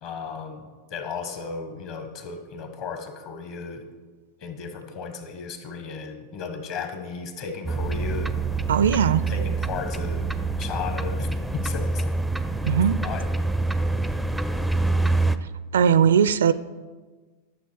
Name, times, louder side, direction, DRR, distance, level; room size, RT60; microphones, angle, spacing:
voice 1, 0.0-3.9 4.4-8.4 9.3-10.3 10.6-12.0 13.0-13.2, left 5 dB, 45° left, 6 dB, 1.5 m, -35 dB
sound 1, 7.6-15.4, right 3 dB, ahead, 0.5 m, -26 dB
voice 2, 8.7-9.3 12.6-13.0 15.7-16.5, right 7 dB, 65° right, 16 dB, 0.4 m, -19 dB
12.0 x 6.9 x 4.7 m, 1.4 s
figure-of-eight pair, 90°, 0 cm